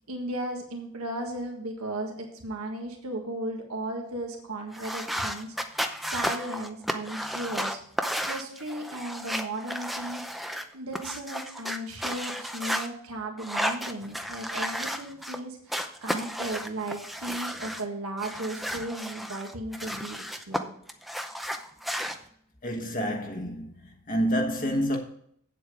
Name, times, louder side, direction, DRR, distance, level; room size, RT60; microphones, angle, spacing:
voice 1, 0.1-5.5 6.0-7.8 8.2-10.4 10.7-20.7, right 1 dB, 70° right, 1.6 m, -36 dB
sound 1, 4.7-12.9 13.4-15.4 15.7-17.8 18.2-20.6 20.9-22.2, equal, ahead, 0.6 m, -33 dB
voice 2, 22.6-23.7 24.1-25.0, equal, 35° left, 1.2 m, -28 dB
8.6 x 7.7 x 4.9 m
head